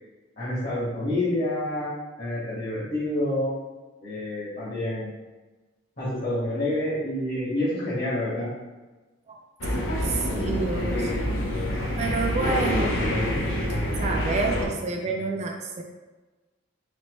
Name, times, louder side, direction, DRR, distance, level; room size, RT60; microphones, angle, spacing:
voice 1, 0.4-1.9 2.2-3.6 4.0-5.1 6.0-8.5, left 1 dB, 50° left, -11 dB, 1.4 m, -28 dB
sound 1, 9.6-14.7, left 1 dB, 80° left, 0.8 m, -26 dB
voice 2, 10.0-11.1 12.0-13.0 14.0-15.8, right 3 dB, 35° right, 1 dB, 0.4 m, -28 dB
4.3 x 3.0 x 3.1 m, 1.2 s
head